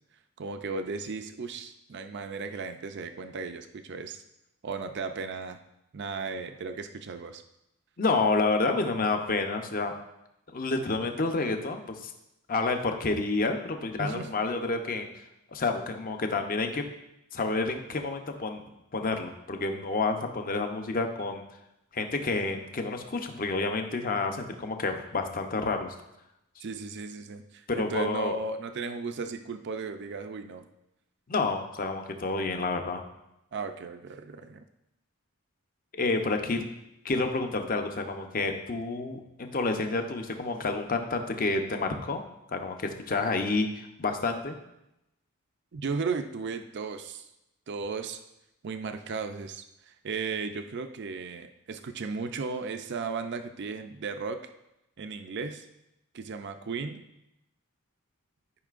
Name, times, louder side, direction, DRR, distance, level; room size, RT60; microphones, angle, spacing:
voice 1, 0.4-4.2 4.6-5.6 5.9-7.4 14.0-14.3 26.6-30.7 33.5-34.6 45.7-47.3 47.7-48.2 48.6-54.5 55.0-55.7 56.1-57.0, right 4 dB, 50° right, 8 dB, 0.5 m, -35 dB
voice 2, 8.0-9.9 10.5-12.1 12.5-15.1 15.5-16.8 17.3-18.6 18.9-21.4 21.9-25.9 27.7-28.3 31.3-33.0 35.9-36.6 37.0-42.2 42.5-44.6, left 3 dB, 40° left, 5 dB, 0.7 m, -29 dB
12.5 x 5.4 x 2.5 m, 0.87 s
head